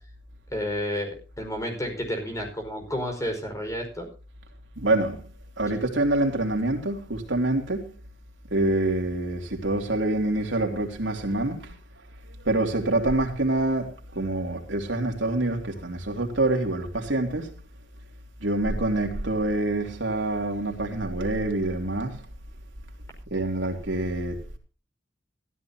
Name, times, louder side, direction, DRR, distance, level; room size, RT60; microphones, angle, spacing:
voice 1, 0.5-4.1, equal, 15° left, 5.2 m, -31 dB
voice 2, 4.7-5.3 5.6-7.9 8.5-11.7 12.2-17.5 18.4-22.2 23.3-24.4, right 2 dB, 80° right, 3.3 m, -26 dB
15.5 x 14.5 x 2.9 m
head